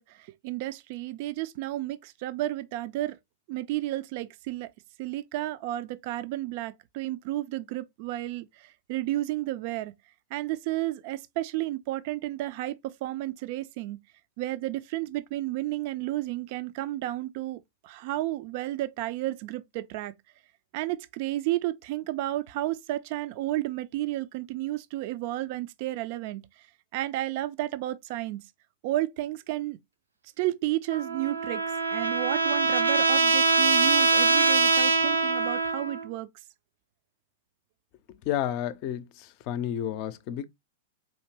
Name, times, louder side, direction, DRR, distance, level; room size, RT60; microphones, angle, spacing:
voice 1, 0.0-3.2 3.5-4.7 5.0-9.9 10.3-14.0 14.4-20.1 20.7-26.4 26.9-28.4 28.8-29.8 30.4-31.6 31.9-36.3, right 16 dB, 50° right, 0.4 m, -32 dB
Trumpet, 30.9-36.0, right 3 dB, 85° right, 0.7 m, -23 dB
voice 2, 38.3-39.0 39.5-40.5, left 10 dB, 45° left, 0.5 m, -30 dB
4.1 x 2.8 x 3.0 m
figure-of-eight pair, 100°, 0 cm